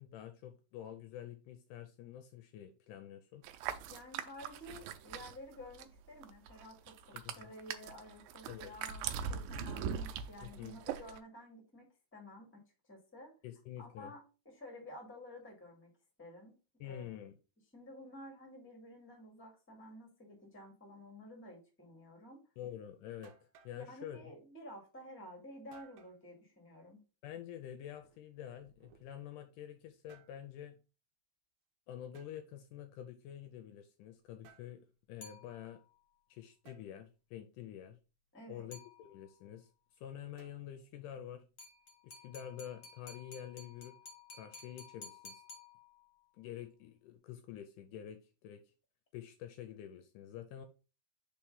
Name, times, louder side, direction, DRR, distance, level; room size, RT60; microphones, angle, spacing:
voice 1, 0.0-3.5 7.1-7.5 8.5-8.8 10.4-10.7 13.4-14.1 16.8-17.4 22.6-23.3 23.6-24.4 27.2-30.8 31.9-34.8 35.1-35.8 36.3-38.0 38.5-39.7 40.0-41.5 42.0-44.0 44.4-45.4 46.4-48.6 49.1-50.7, left 10 dB, 80° left, 2.0 m, -48 dB
sound 1, 3.4-6.0 6.2-11.2, right 8 dB, 90° right, 2.4 m, -41 dB
voice 2, 3.9-13.3 13.8-15.9 16.2-16.6 16.8-17.1 17.7-22.4 23.7-27.0 38.3-38.7, left 1 dB, 5° left, 1.2 m, -52 dB
sound 2, 22.7-22.8 23.2-23.8 25.7-26.2 27.9-29.3 29.9-30.4 32.1-32.4 34.4-34.8 36.7-36.9 40.4-40.9, right 6 dB, 70° right, 1.8 m, -62 dB
sound 3, 35.2-36.0 38.7-39.5 41.6-46.3, left 3 dB, 50° left, 1.5 m, -54 dB
4.6 x 4.5 x 5.4 m
omnidirectional pair, 4.1 m